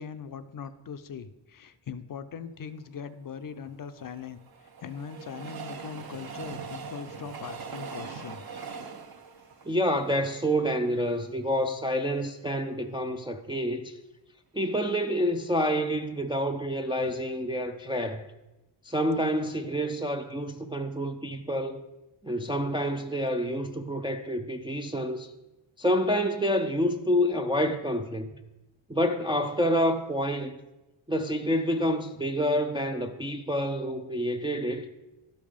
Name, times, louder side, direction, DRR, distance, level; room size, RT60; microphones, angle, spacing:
voice 1, 0.0-8.7, left 6 dB, 45° left, 0.5 m, -41 dB
Train, 3.7-10.9 11.4-11.5 11.7-11.8, right 5 dB, 45° right, 0.8 m, -41 dB
voice 2, 9.7-14.0 14.5-18.3 18.8-21.8 22.2-25.3 25.8-28.3 28.9-30.6 31.1-34.9, equal, 10° right, 0.3 m, -28 dB
12.0 x 5.3 x 5.1 m
wide cardioid pair, 125°, 49 cm